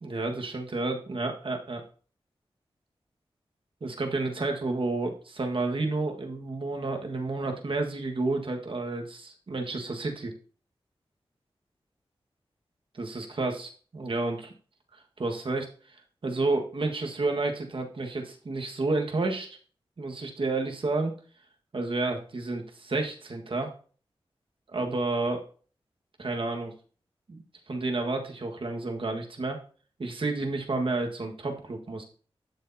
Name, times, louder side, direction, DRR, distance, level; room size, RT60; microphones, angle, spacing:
voice 1, 0.0-1.8 3.8-10.3 12.9-14.5 15.2-16.0 16.2-19.6 20.0-21.1 21.7-23.7 24.7-25.4 26.2-26.7 27.3-29.6 30.0-32.0, right 3 dB, 60° right, 2 dB, 1.7 m, -30 dB
12.0 x 6.5 x 2.8 m, 0.41 s
wide cardioid pair, 70°, 10 cm